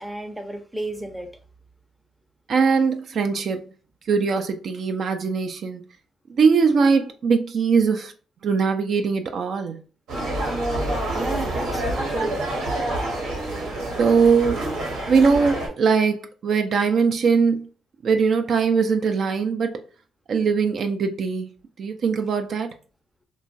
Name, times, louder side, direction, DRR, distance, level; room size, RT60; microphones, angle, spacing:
voice 1, 0.0-1.3 11.1-12.5, right 1 dB, 5° right, 0.5 m, -32 dB
voice 2, 2.5-3.7 4.1-5.8 6.3-8.1 8.4-9.8 14.0-14.7 15.1-17.7 18.0-19.8 20.3-21.5 21.8-22.7, right 5 dB, 55° right, 0.3 m, -21 dB
sound 1, 10.1-15.7, right 1 dB, 90° right, 0.9 m, -27 dB
2.9 x 2.2 x 2.5 m
cardioid pair, 90°, 0 cm